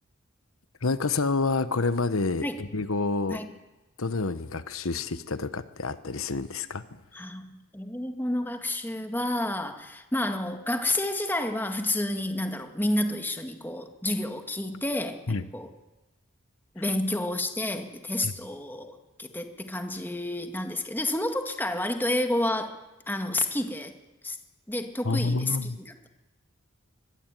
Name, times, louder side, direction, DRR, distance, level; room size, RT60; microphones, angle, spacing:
voice 1, 0.8-3.4 4.0-7.0 15.3-15.4 16.8-16.9 18.2-18.3 25.0-25.8, left 3 dB, 85° left, 13 dB, 1.1 m, -28 dB
voice 2, 7.1-15.7 16.8-22.8 23.1-23.9 24.2-24.4 24.7-26.1, left 1 dB, 10° left, 5 dB, 2.0 m, -30 dB
25.0 x 21.5 x 9.2 m, 1.1 s
head